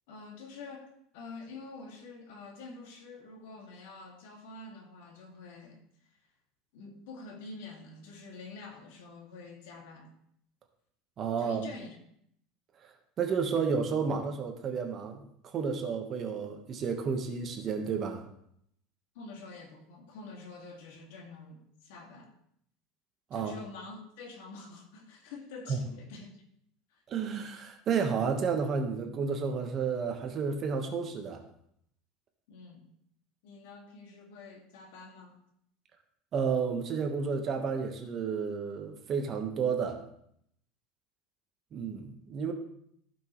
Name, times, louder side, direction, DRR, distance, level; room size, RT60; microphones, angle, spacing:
voice 1, 0.1-5.8 6.1-6.2 6.7-10.1 11.4-12.0 19.1-22.3 23.3-26.4 26.9-27.0 32.5-32.9 33.4-35.4, left 3 dB, 75° left, 2 dB, 2.1 m, -47 dB
voice 2, 11.2-11.7 13.2-15.2 15.5-18.2 23.3-23.5 25.7-25.8 27.1-31.4 36.3-40.0 41.7-42.5, right 6 dB, 30° right, 4 dB, 1.2 m, -31 dB
15.0 x 6.1 x 3.1 m, 0.71 s
supercardioid pair, 165°, 0 cm